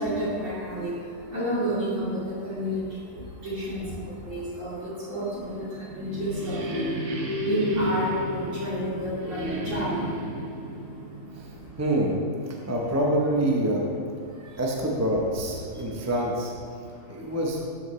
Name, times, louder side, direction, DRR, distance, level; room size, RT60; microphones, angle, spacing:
voice 1, 0.0-11.8 12.5-12.7 14.2-14.6 15.7-16.1 16.8-17.3, equal, 45° right, -8 dB, 2.8 m, -32 dB
sound 1, 5.5-12.2, equal, 65° right, 1.5 m, -32 dB
voice 2, 11.3-12.2 12.5-13.8 14.6-16.5 17.1-17.6, right 1 dB, 15° right, -2 dB, 0.5 m, -26 dB
13.0 x 5.6 x 3.2 m, 2.3 s
omnidirectional pair, 1.7 m